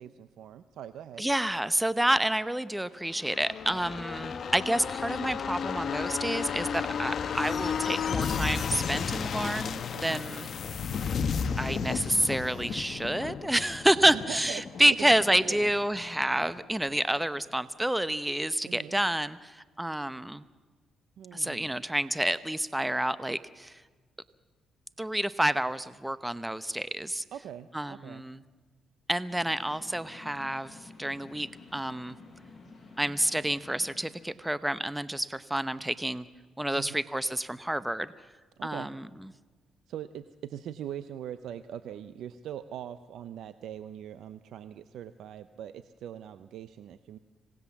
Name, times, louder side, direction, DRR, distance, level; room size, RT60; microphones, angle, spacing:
voice 1, 0.0-1.3 9.9-10.2 14.1-15.1 15.4-15.7 18.6-19.0 21.2-21.8 27.3-28.2 36.7-37.0 38.6-38.9 39.9-47.2, right 10 dB, 75° right, 12 dB, 0.7 m, -42 dB
voice 2, 1.2-10.5 11.6-20.4 21.3-23.8 25.0-27.2 27.7-28.4 29.1-32.2 33.0-36.2 36.6-38.1 38.6-39.1, right 1 dB, 5° right, 15 dB, 0.8 m, -29 dB
sound 1, 3.1-16.6 16.9-17.0, left 6 dB, 55° left, 1.1 m, -33 dB
sound 2, 29.3-34.5, left 3 dB, 25° left, 6.7 m, -51 dB
26.5 x 18.5 x 7.2 m, 1.4 s
cardioid pair, 90°, 0 cm